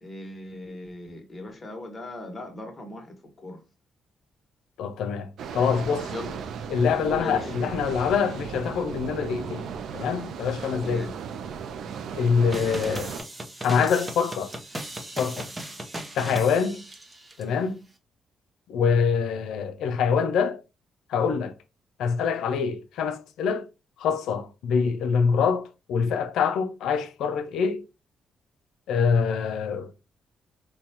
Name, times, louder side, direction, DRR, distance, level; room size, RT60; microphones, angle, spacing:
voice 1, 0.0-3.1 3.4-3.6 6.1-6.4 7.0-7.5 10.8-11.1, left 1 dB, 30° left, 1.2 m, -38 dB
voice 2, 4.8-6.1 6.7-9.7 9.9-11.1 12.2-13.1 13.6-14.5 15.2-15.5 16.1-16.8 17.4-17.8 18.7-20.6 21.1-21.5 22.0-23.7 24.0-27.8 28.9-29.9, left 6 dB, 90° left, 0.4 m, -25 dB
sound 1, 5.4-13.2, right 6 dB, 75° right, 0.4 m, -36 dB
sound 2, 12.5-17.4, right 1 dB, 20° right, 0.6 m, -37 dB
4.0 x 2.2 x 2.8 m
cardioid pair, 100°, 0 cm